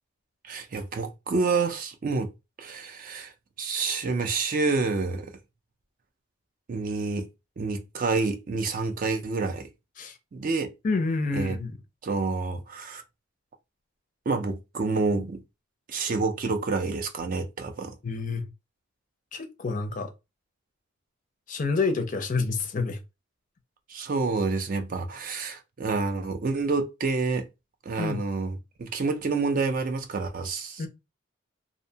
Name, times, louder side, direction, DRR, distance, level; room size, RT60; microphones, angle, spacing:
voice 1, 0.4-2.3 2.6-3.3 3.6-5.3 6.7-7.3 7.6-9.7 10.3-10.7 11.3-11.6 12.0-13.0 14.3-15.4 15.9-18.0 23.9-27.5 27.9-30.9, right 4 dB, 40° right, 0.3 m, -28 dB
voice 2, 10.8-11.8 18.0-18.4 19.3-20.1 21.5-23.0 28.0-28.2 30.8-30.9, left 4 dB, 40° left, 0.4 m, -28 dB
2.6 x 2.1 x 2.7 m
head